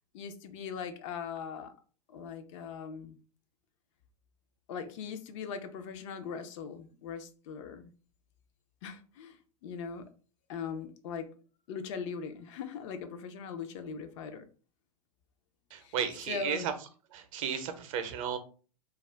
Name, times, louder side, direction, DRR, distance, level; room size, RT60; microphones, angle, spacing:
voice 1, 0.1-1.7 2.1-3.2 4.7-7.9 8.8-10.0 10.5-11.3 11.7-14.4 15.8-15.9 16.3-16.7, left 6 dB, 50° left, 0.5 m, -40 dB
voice 2, 15.7-16.7 17.1-18.4, right 8 dB, 55° right, 0.6 m, -34 dB
2.3 x 2.1 x 3.2 m
hypercardioid pair, 110°, 20 cm